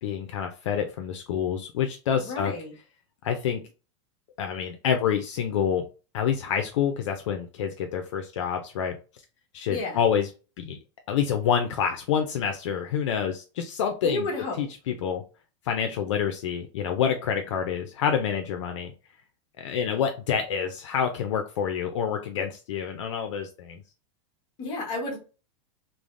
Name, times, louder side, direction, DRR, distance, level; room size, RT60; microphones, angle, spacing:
voice 1, 0.0-2.5 3.2-3.6 4.4-5.8 6.1-8.9 9.5-10.3 10.6-10.8 11.1-14.3 14.6-15.2 15.7-18.9 19.6-23.8, left 8 dB, 65° left, 5 dB, 0.5 m, -27 dB
voice 2, 2.1-2.7 9.7-10.0 14.0-14.7 24.6-25.2, left 2 dB, 25° left, -1 dB, 1.0 m, -31 dB
3.2 x 2.1 x 2.5 m, 0.32 s
supercardioid pair, 175°, 17 cm